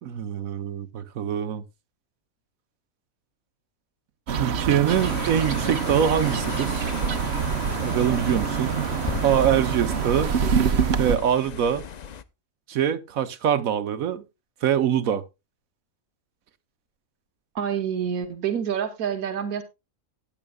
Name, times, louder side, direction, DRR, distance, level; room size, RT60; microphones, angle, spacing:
voice 1, 0.0-1.6 4.3-6.9 7.8-8.8 9.2-10.3 11.0-11.8 12.7-14.2 14.6-15.2, right 9 dB, 70° right, 1.2 m, -24 dB
sound 1, 4.3-11.2, right 6 dB, 55° right, 1.0 m, -25 dB
sound 2, 4.9-12.2, left 7 dB, 80° left, 0.3 m, -37 dB
voice 2, 17.5-19.6, right 8 dB, 90° right, 1.6 m, -27 dB
16.0 x 9.4 x 2.2 m
omnidirectional pair, 1.5 m